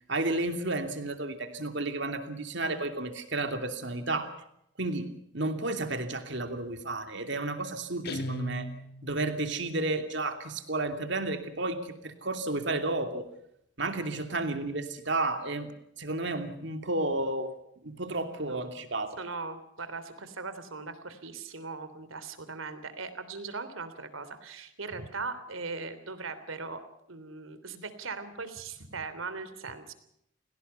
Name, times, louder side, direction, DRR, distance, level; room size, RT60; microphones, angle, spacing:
voice 1, 0.1-4.3 4.8-5.1 5.3-8.7 9.0-13.3 13.8-17.5 17.8-19.2, right 2 dB, 60° right, 7 dB, 2.9 m, -32 dB
Guitar, 8.0-9.3, left 1 dB, 50° left, 1.4 m, -36 dB
voice 2, 19.2-26.8 27.1-29.9, right 4 dB, 80° right, 12 dB, 3.3 m, -39 dB
29.5 x 18.5 x 5.7 m, 0.75 s
head